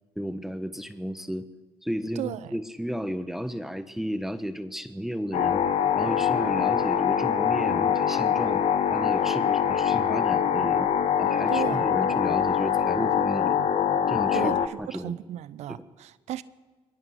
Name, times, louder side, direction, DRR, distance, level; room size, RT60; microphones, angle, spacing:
voice 1, 0.1-1.5 1.8-5.6 5.9-8.6 8.9-10.9 11.2-13.6 14.1-15.2 15.7-15.8, equal, 5° right, 1.2 m, -33 dB
voice 2, 2.2-2.6 11.5-11.9 14.3-16.4, right 13 dB, 75° right, 0.7 m, -35 dB
sound 1, 5.3-14.7, left 8 dB, 70° left, 1.0 m, -24 dB
22.5 x 19.0 x 6.6 m
supercardioid pair, 60°, 12 cm